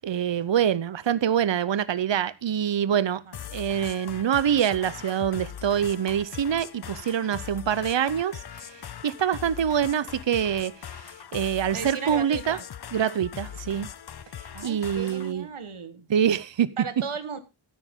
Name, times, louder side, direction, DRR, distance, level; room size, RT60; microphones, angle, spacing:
voice 1, 0.0-3.2 3.5-11.0 11.3-12.6 12.9-13.9 14.6-15.4 16.1-16.7, right 9 dB, 65° right, 0.7 m, -25 dB
sound 1, 3.3-15.3, left 9 dB, 55° left, 0.6 m, -40 dB
voice 2, 11.7-12.6 14.5-16.1 16.8-17.4, right 6 dB, 85° right, 1.4 m, -35 dB
13.0 x 10.0 x 3.6 m
wide cardioid pair, 70°, 49 cm